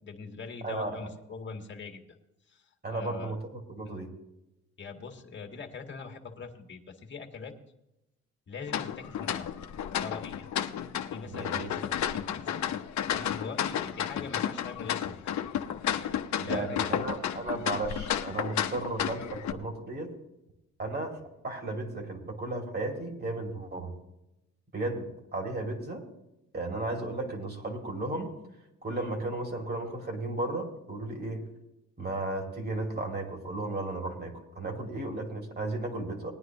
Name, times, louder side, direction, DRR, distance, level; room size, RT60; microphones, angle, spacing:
voice 1, 0.0-2.0 2.5-3.3 3.8-4.1 4.8-7.5 8.5-9.5 10.0-10.5 11.1-12.6 13.1-15.3 15.9-17.0, left 4 dB, 40° left, 4 dB, 1.9 m, -42 dB
voice 2, 0.6-1.1 2.8-4.2 11.3-11.7 16.4-20.1 20.8-21.2 21.4-23.9 24.7-26.0 26.5-28.3 28.8-31.4 32.0-36.3, right 2 dB, 35° right, 3 dB, 2.9 m, -34 dB
sound 1, 8.7-19.5, left 10 dB, 65° left, 0.9 m, -32 dB
19.5 x 9.8 x 3.1 m, 0.89 s
cardioid pair, 90°, 30 cm